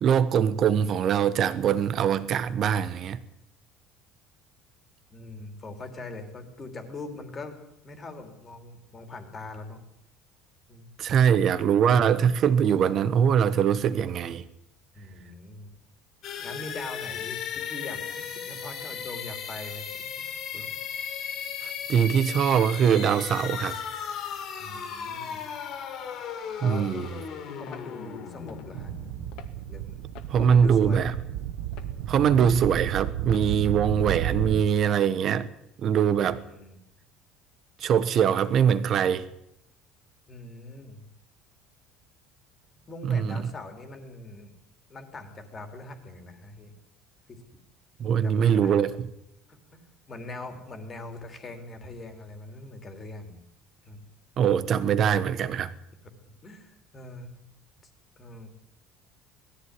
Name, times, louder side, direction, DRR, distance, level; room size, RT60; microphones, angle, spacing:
voice 1, 0.0-3.2 11.0-14.4 21.6-23.8 26.6-27.1 30.3-31.1 32.1-35.5 35.8-36.4 37.8-39.3 43.0-43.4 48.0-49.1 54.4-55.7, right 8 dB, 35° right, 1.2 m, -22 dB
voice 2, 5.1-7.6 7.8-9.8 10.7-10.9 15.0-15.7 16.4-20.7 24.6-25.4 26.6-26.9 27.6-28.9 29.7-30.0 30.4-31.0 36.4-36.8 40.3-41.0 42.9-44.5 44.9-46.7 47.3-47.4 48.0-48.8 49.5-49.8 50.1-53.4 53.8-54.0 56.4-57.3 58.2-58.5, left 2 dB, 20° left, 3.1 m, -42 dB
sound 1, 16.2-29.9, left 7 dB, 40° left, 3.0 m, -36 dB
sound 2, 27.7-27.9 28.5-28.7 29.3-29.5 30.1-30.4 30.9-31.3 31.7-31.9 32.5-32.7 33.3-33.5 34.1-34.3 34.9-35.1, left 10 dB, 55° left, 2.3 m, -47 dB
sound 3, 28.7-34.6, right 11 dB, 75° right, 1.2 m, -32 dB
20.0 x 15.0 x 9.7 m
cardioid pair, 175°, 0 cm